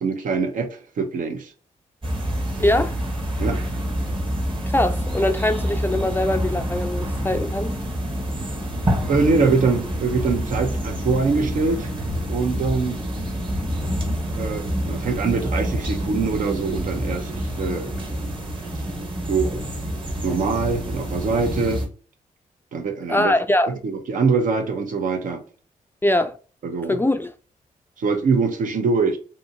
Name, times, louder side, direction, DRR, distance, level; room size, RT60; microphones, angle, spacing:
voice 1, 0.0-1.5 3.4-3.6 9.0-11.9 12.3-13.0 14.4-17.9 19.3-19.6 20.2-21.8 22.7-23.3 23.7-25.4 26.6-27.0 28.0-29.2, right 4 dB, 70° right, 0.7 m, -23 dB
sound 1, 2.0-21.9, equal, 35° right, 1.2 m, -27 dB
voice 2, 2.6-2.9 4.7-7.8 23.1-23.7 26.0-26.4 26.9-27.3, left 1 dB, 15° left, 0.3 m, -22 dB
2.7 x 2.6 x 2.7 m
cardioid pair, 70°, 14 cm